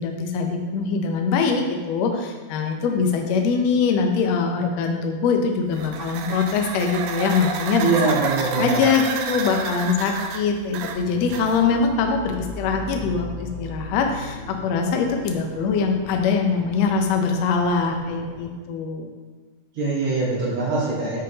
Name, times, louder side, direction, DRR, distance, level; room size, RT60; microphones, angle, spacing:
voice 1, 0.0-8.2 8.6-19.1, left 5 dB, 80° left, 3 dB, 1.5 m, -23 dB
sound 1, 5.7-11.9, right 6 dB, 90° right, 2.3 m, -30 dB
voice 2, 7.8-8.8 19.7-21.2, right 3 dB, 60° right, -5 dB, 1.5 m, -23 dB
sound 2, 10.9-18.5, equal, 10° left, 1.2 m, -38 dB
7.5 x 5.6 x 2.8 m, 1.3 s
omnidirectional pair, 3.9 m